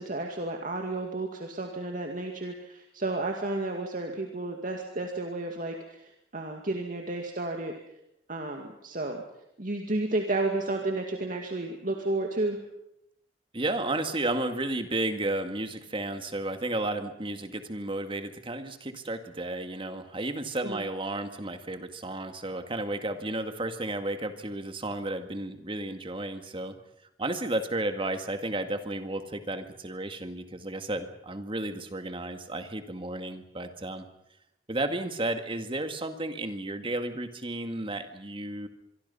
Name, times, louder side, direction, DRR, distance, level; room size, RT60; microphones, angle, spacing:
voice 1, 0.0-7.7 8.3-9.2 9.6-12.6 20.6-20.9, right 2 dB, 50° right, 2 dB, 2.3 m, -32 dB
voice 2, 13.5-26.8 27.2-34.1 34.7-38.7, right 2 dB, 30° right, 7 dB, 2.0 m, -33 dB
25.0 x 24.0 x 5.7 m, 0.79 s
head